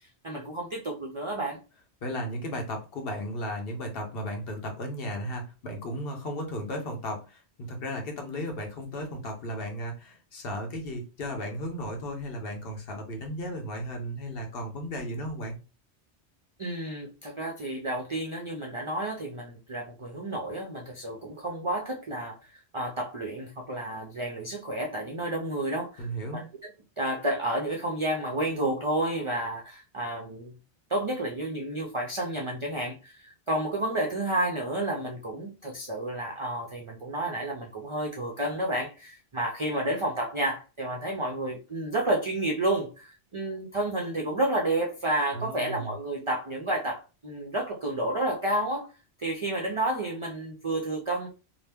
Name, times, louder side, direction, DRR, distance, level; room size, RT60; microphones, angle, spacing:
voice 1, 0.2-1.6 16.6-26.5 27.0-30.5 30.9-48.9 49.2-51.3, right 1 dB, 50° right, 0 dB, 0.3 m, -31 dB
voice 2, 2.0-7.4 7.7-15.6 26.0-26.4 45.3-45.9, equal, 60° left, 2 dB, 1.0 m, -35 dB
2.8 x 2.1 x 3.4 m, 0.32 s
omnidirectional pair, 1.2 m